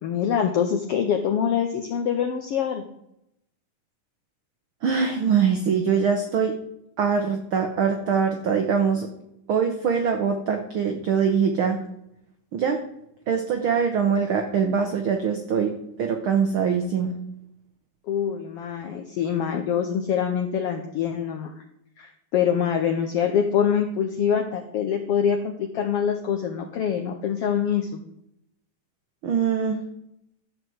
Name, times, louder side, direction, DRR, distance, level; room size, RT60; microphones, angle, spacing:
voice 1, 0.0-2.8 18.1-21.5 22.0-28.0, left 8 dB, 85° left, 6 dB, 1.3 m, -25 dB
voice 2, 4.8-6.6 7.0-9.1 9.5-11.8 12.5-12.8 13.3-17.1 29.2-29.8, right 6 dB, 85° right, 5 dB, 1.1 m, -23 dB
12.0 x 4.9 x 7.9 m, 0.80 s
omnidirectional pair, 3.7 m